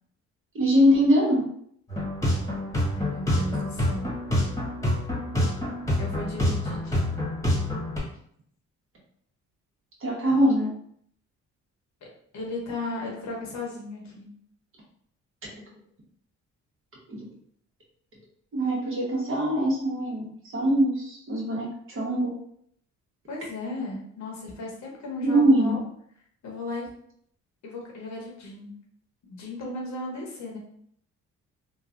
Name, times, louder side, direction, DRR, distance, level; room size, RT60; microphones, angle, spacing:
voice 1, 0.5-1.5 3.4-3.5 10.0-10.7 17.1-17.2 18.5-20.2 20.5-22.3 25.2-25.8, equal, 45° right, -4 dB, 1.2 m, -22 dB
sound 1, 1.9-8.0, left 1 dB, 10° left, 1.2 m, -27 dB
voice 2, 2.9-4.1 6.0-7.2 12.3-14.3 23.3-25.8 26.4-26.9 27.6-28.7 29.3-30.6, left 2 dB, 65° left, -2 dB, 1.0 m, -35 dB
3.1 x 2.2 x 2.5 m, 0.66 s
cardioid pair, 90°, 30 cm